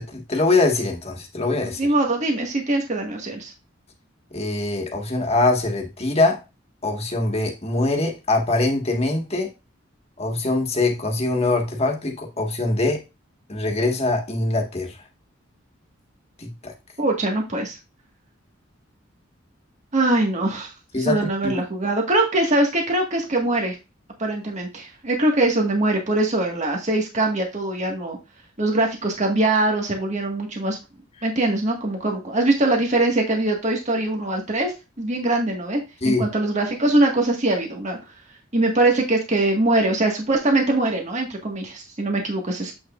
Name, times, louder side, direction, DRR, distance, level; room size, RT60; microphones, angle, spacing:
voice 1, 0.0-1.9 4.3-6.4 6.8-9.5 10.2-13.0 13.5-15.0 16.4-16.7 20.9-21.5 36.0-36.2, left 2 dB, 30° left, 2 dB, 1.7 m, -23 dB
voice 2, 1.8-3.5 17.0-17.8 19.9-20.7 21.0-23.8 24.2-28.2 28.6-30.8 31.2-38.0 38.5-42.7, right 2 dB, 40° right, 1 dB, 1.7 m, -22 dB
8.0 x 6.0 x 2.5 m, 0.26 s
head